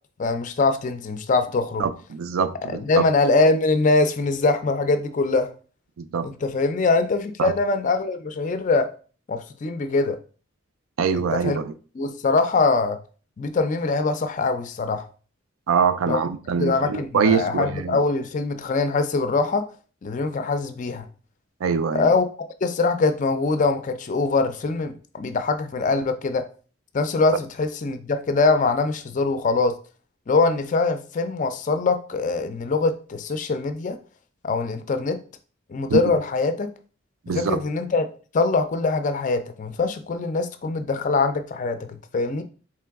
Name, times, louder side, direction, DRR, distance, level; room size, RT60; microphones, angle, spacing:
voice 1, 0.2-1.9 2.7-5.5 6.2-8.9 9.3-10.2 11.1-11.6 12.0-13.0 13.4-15.1 16.1-16.2 16.6-19.6 20.0-21.1 21.9-22.2 22.6-26.4 26.9-29.8 30.3-34.0 34.4-35.2 35.7-36.7 37.3-38.1 38.3-42.4, left 3 dB, 40° left, 0.4 m, -23 dB
voice 2, 1.8-3.0 6.0-6.3 7.4-7.5 11.0-11.7 15.7-18.0 21.6-22.1 35.9-36.0 37.3-37.6, right 6 dB, 85° right, 0.4 m, -24 dB
3.8 x 3.1 x 3.4 m
head